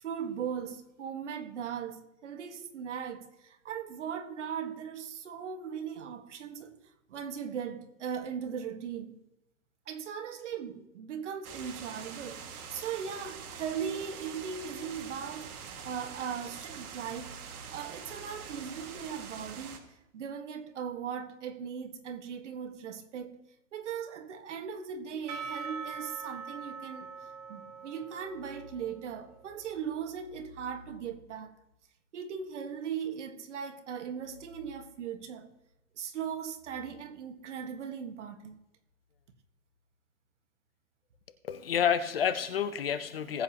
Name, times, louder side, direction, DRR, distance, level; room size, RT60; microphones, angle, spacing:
voice 1, 0.0-6.7 7.1-9.2 9.9-17.4 17.7-19.8 20.1-23.4 23.7-27.1 27.5-31.5 32.1-35.5 36.0-38.6, right 7 dB, 55° right, 1.6 m, -38 dB
sound 1, 11.4-19.8, right 6 dB, 85° right, 2.0 m, -44 dB
Percussion / Church bell, 25.3-29.7, right 5 dB, 15° right, 1.0 m, -43 dB
voice 2, 41.4-43.4, left 8 dB, 45° left, 0.6 m, -29 dB
19.5 x 7.9 x 2.9 m
hypercardioid pair, 170°, 43 cm